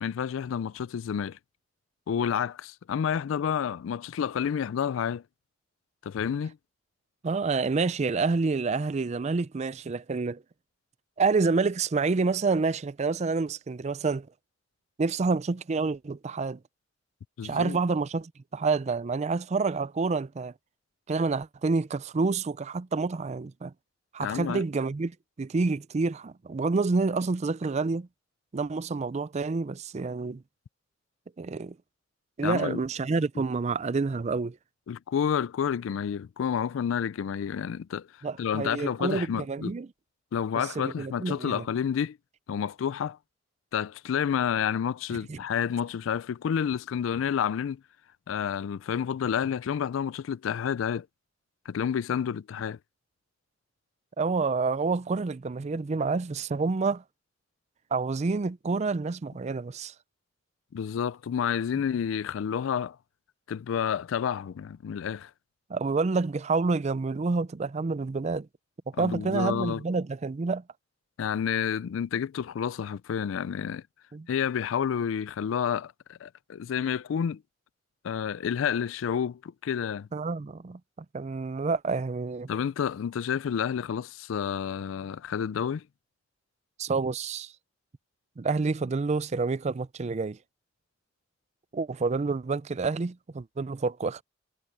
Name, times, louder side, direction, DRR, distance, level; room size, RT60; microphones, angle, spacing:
voice 1, 0.0-1.4 2.1-5.2 6.0-6.6 17.4-17.8 24.2-24.6 32.4-32.8 33.4-33.5 34.9-38.1 38.4-39.7 40.3-42.2 42.5-43.2 43.7-47.8 48.3-51.1 51.7-52.8 60.7-63.0 63.5-65.3 69.0-69.8 71.2-73.8 74.3-77.4 78.0-80.1 82.5-85.8, left 8 dB, 85° left, 0.3 m, -29 dB
voice 2, 7.2-10.4 11.2-14.3 15.0-16.6 17.4-20.5 21.1-23.7 24.1-28.1 28.5-30.4 31.4-31.8 32.4-34.6 38.2-39.9 40.6-41.7 45.3-45.4 54.2-57.0 57.9-59.9 65.7-68.5 69.0-70.6 74.1-74.3 80.1-80.8 81.1-82.5 86.8-87.5 88.4-90.4 91.7-94.2, right 4 dB, 35° right, 0.4 m, -28 dB
head